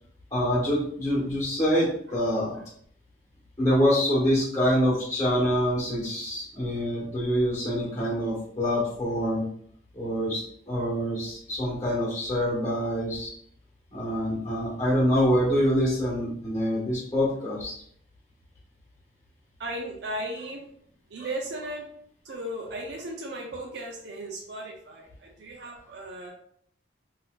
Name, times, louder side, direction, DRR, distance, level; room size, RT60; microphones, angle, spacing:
voice 1, 0.3-2.6 3.6-9.4 9.9-13.3 13.9-17.8, equal, 15° left, -6 dB, 1.1 m, -25 dB
voice 2, 19.6-20.7 21.1-21.9 22.2-26.3, right 1 dB, 65° right, 0 dB, 0.4 m, -36 dB
4.1 x 2.5 x 2.2 m, 0.65 s
head